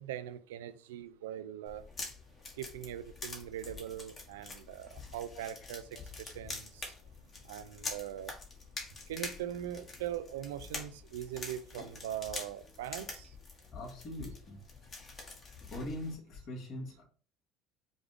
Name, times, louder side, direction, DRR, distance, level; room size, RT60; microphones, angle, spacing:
voice 1, 0.0-1.8 2.6-5.8 6.2-6.9 7.5-8.3 9.1-13.3, right 11 dB, 90° right, 13 dB, 0.3 m, -41 dB
sound 1, 1.7-16.2, left 3 dB, 40° left, 1.4 m, -46 dB
voice 2, 13.7-14.6 15.7-17.0, left 1 dB, 55° left, 0 dB, 1.7 m, -42 dB
5.0 x 2.4 x 3.3 m, 0.42 s
supercardioid pair, 80°, 0 cm